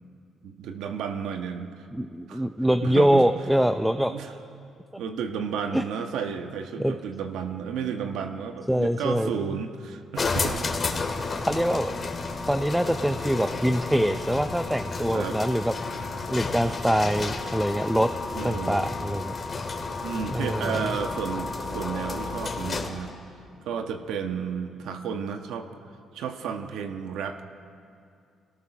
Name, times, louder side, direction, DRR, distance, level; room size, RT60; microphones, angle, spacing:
voice 1, 0.4-1.8 2.3-2.5 2.8-3.3 4.0-4.3 5.0-10.6 15.1-15.4 18.3-18.8 20.0-23.1 23.6-25.7 26.1-27.4, right 7 dB, 85° right, 6 dB, 1.3 m, -32 dB
voice 2, 1.9-4.1 5.7-5.8 6.8-7.0 8.7-9.3 11.5-11.9 12.5-15.7 16.3-18.1 18.4-19.3 20.3-20.9, equal, 5° right, 8 dB, 0.6 m, -24 dB
sound 1, 10.2-23.1, left 3 dB, 40° left, 2.2 m, -31 dB
25.5 x 18.5 x 6.1 m, 2.4 s
cardioid pair, 90°, 0 cm